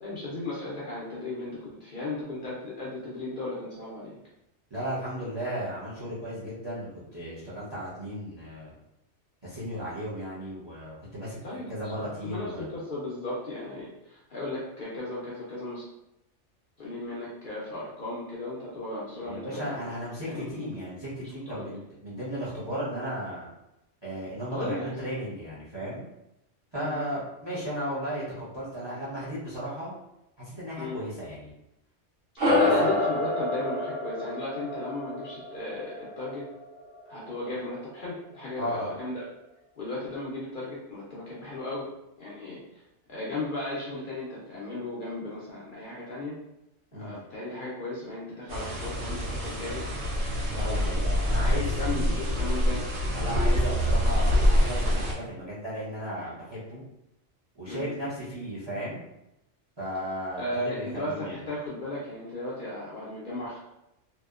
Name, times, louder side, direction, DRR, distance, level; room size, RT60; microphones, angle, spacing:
voice 1, 0.0-4.2 11.4-11.9 12.2-15.8 16.8-19.8 20.2-20.6 21.5-21.8 24.5-24.9 26.8-27.0 30.8-31.0 32.3-36.5 37.1-39.2 39.8-41.9 42.2-42.6 43.1-46.4 46.9-49.9 50.4-50.9 51.2-52.9 57.6-57.9 60.4-63.6, left 2 dB, 55° left, -7 dB, 0.6 m, -36 dB
voice 2, 4.7-6.9 7.1-8.7 9.4-11.4 11.7-12.7 19.2-21.8 22.0-23.5 24.0-26.0 26.7-29.9 30.4-31.5 32.4-32.7 38.6-38.9 46.9-47.1 50.5-51.7 53.1-56.8 57.5-59.0 59.8-61.4, equal, 25° right, -9 dB, 0.7 m, -35 dB
sound 1, 32.4-37.1, left 2 dB, 60° right, 0.9 m, -28 dB
sound 2, 48.5-55.1, equal, 85° right, 1.1 m, -25 dB
2.7 x 2.1 x 2.3 m, 0.87 s
omnidirectional pair, 1.3 m